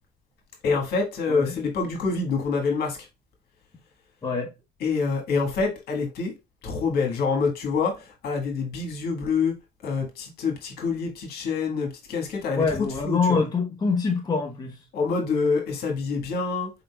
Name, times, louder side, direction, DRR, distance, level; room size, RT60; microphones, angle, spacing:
voice 1, 0.6-3.0 4.8-6.3 6.6-7.9 8.2-9.5 9.8-12.6 13.0-13.4 14.9-16.7, left 4 dB, 65° left, 1.5 m, -26 dB
voice 2, 12.5-14.8, left 4 dB, 25° left, 0.9 m, -25 dB
4.3 x 3.8 x 2.3 m
cardioid pair, 110°, 17 cm